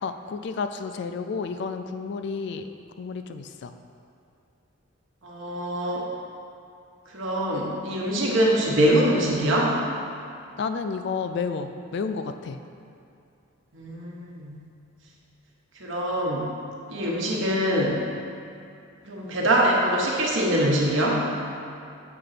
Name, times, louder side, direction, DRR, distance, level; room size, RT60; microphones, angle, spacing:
voice 1, 0.0-2.7 3.0-3.7 10.6-12.6, left 5 dB, 55° left, 8 dB, 0.3 m, -31 dB
voice 2, 5.2-6.0 7.1-9.8 13.7-14.6 15.8-16.5 16.9-18.0 19.0-21.2, right 1 dB, 65° right, -3 dB, 1.1 m, -23 dB
6.6 x 3.9 x 5.8 m, 2.5 s
head